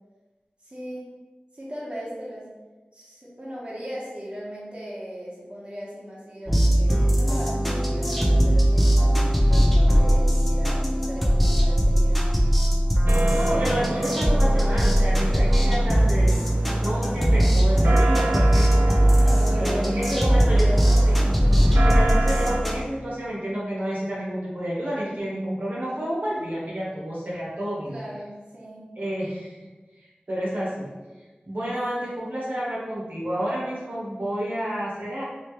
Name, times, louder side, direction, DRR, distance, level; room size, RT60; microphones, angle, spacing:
voice 1, 0.6-1.1 1.5-2.5 2.9-12.5 13.6-14.1 15.7-16.2 19.2-21.3 21.7-22.0 27.9-28.9 31.9-32.2, equal, 35° right, -7 dB, 1.0 m, -37 dB
sound 1, 6.5-22.8, equal, ahead, 0.6 m, -20 dB
sound 2, 13.1-22.6, right 2 dB, 90° right, 0.3 m, -30 dB
voice 2, 13.3-16.4 16.8-19.2 19.5-20.7 21.1-21.2 21.8-28.0 29.0-29.5 30.0-30.9 31.4-35.2, equal, 60° right, -7 dB, 1.1 m, -30 dB
3.2 x 2.9 x 3.1 m, 1.2 s
wide cardioid pair, 55°, 3 cm